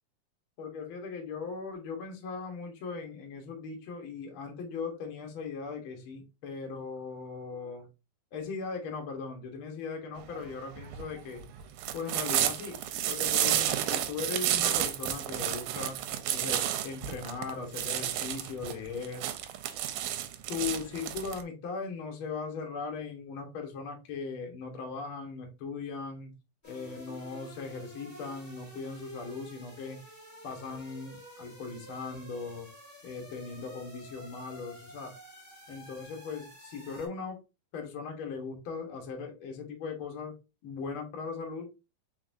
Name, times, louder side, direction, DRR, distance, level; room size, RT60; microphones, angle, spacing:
voice 1, 0.6-7.9 8.3-11.5 11.9-12.8 13.1-16.0 16.3-19.2 20.5-26.3 26.6-30.0 30.4-32.7 33.0-35.1 35.7-37.4 37.7-40.3 40.6-41.7, left 5 dB, 65° left, 2 dB, 1.3 m, -39 dB
sound 1, 10.2-21.4, right 12 dB, 80° right, 2.1 m, -31 dB
sound 2, 26.6-37.1, equal, 20° left, 0.4 m, -50 dB
4.8 x 3.9 x 2.6 m, 0.27 s
omnidirectional pair, 4.0 m